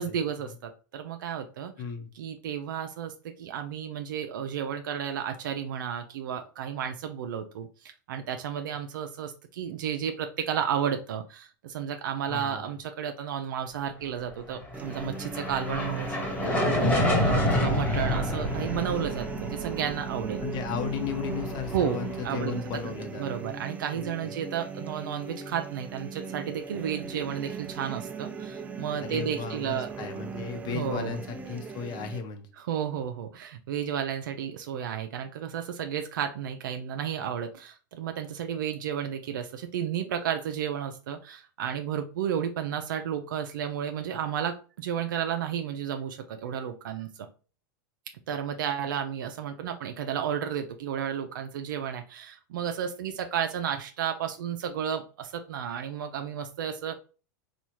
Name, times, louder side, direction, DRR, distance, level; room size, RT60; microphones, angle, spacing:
voice 1, 0.0-1.7 2.1-20.4 21.7-22.6 23.2-29.9 30.7-31.2 32.6-47.3 48.3-57.0, right 8 dB, 85° right, 6 dB, 0.5 m, -32 dB
voice 2, 1.8-2.1 12.3-12.7 20.4-23.2 23.9-24.3 29.0-32.5, left 6 dB, 40° left, 7 dB, 0.8 m, -35 dB
sound 1, 14.6-23.0, left 1 dB, 15° left, 1.0 m, -29 dB
sound 2, 14.7-32.2, right 5 dB, 15° right, 0.3 m, -39 dB
4.2 x 2.4 x 3.0 m, 0.36 s
supercardioid pair, 130°, 10 cm